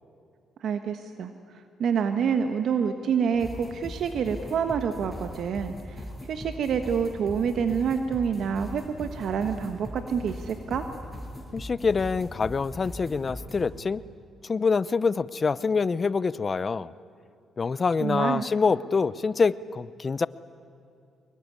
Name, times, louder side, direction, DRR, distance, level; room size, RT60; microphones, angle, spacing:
voice 1, 0.6-1.3 1.8-10.9 18.0-18.4, right 7 dB, 65° right, 8 dB, 1.3 m, -27 dB
sound 1, 3.3-13.6, left 1 dB, ahead, 6.6 m, -40 dB
voice 2, 11.5-14.0 14.4-16.9 17.6-20.3, left 5 dB, 35° left, 18 dB, 0.7 m, -25 dB
24.0 x 22.0 x 9.7 m, 2.5 s
cardioid pair, 90°, 0 cm